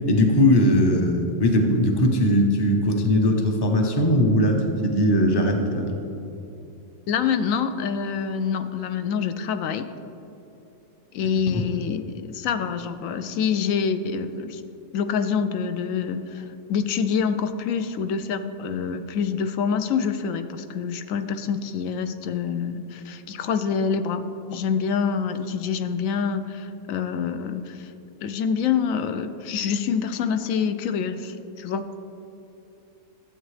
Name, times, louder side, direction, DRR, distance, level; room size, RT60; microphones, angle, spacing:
voice 1, 0.1-5.9 11.5-11.6, left 1 dB, 25° left, 3 dB, 0.6 m, -20 dB
voice 2, 7.1-9.9 11.1-14.6 14.9-24.2 24.5-27.9 28.2-31.9, left 6 dB, 75° left, 10 dB, 0.9 m, -26 dB
12.5 x 8.0 x 3.2 m, 2.9 s
omnidirectional pair, 1.5 m